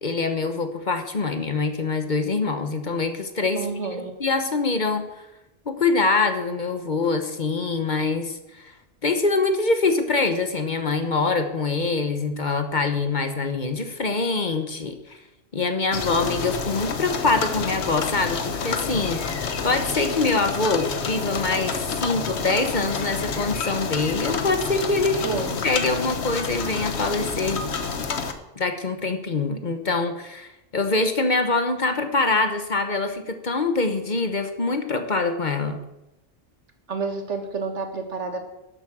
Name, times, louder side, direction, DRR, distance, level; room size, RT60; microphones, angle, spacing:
voice 1, 0.0-5.3 5.7-8.7 9.0-15.2 15.5-19.2 19.6-25.2 25.6-27.6 28.6-35.8, left 3 dB, 45° left, 7 dB, 1.2 m, -24 dB
voice 2, 3.6-4.1 25.1-25.6 36.9-38.4, right 4 dB, 80° right, 5 dB, 1.9 m, -29 dB
sound 1, 15.9-28.3, left 5 dB, 70° left, 1.3 m, -29 dB
12.5 x 8.0 x 6.2 m, 0.94 s
omnidirectional pair, 1.2 m